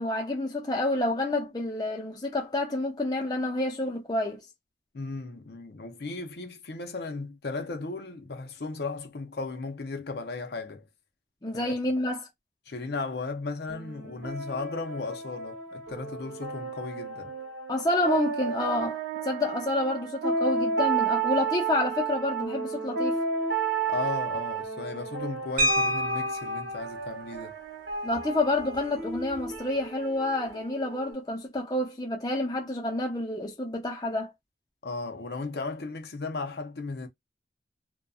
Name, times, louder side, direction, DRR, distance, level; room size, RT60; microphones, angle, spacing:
voice 1, 0.0-4.4 11.4-12.3 17.7-19.0 19.2-23.2 28.0-34.3, left 2 dB, 20° left, 0.5 m, -28 dB
voice 2, 4.9-10.9 11.5-11.7 12.7-17.3 23.9-27.5 34.8-37.1, left 3 dB, 70° left, 0.6 m, -35 dB
sound 1, 13.7-31.1, right 4 dB, 85° right, 1.0 m, -32 dB
sound 2, 25.6-26.7 28.1-28.2 28.6-28.8 29.1-29.4, right 1 dB, 50° right, 0.7 m, -28 dB
2.6 x 2.2 x 2.2 m
head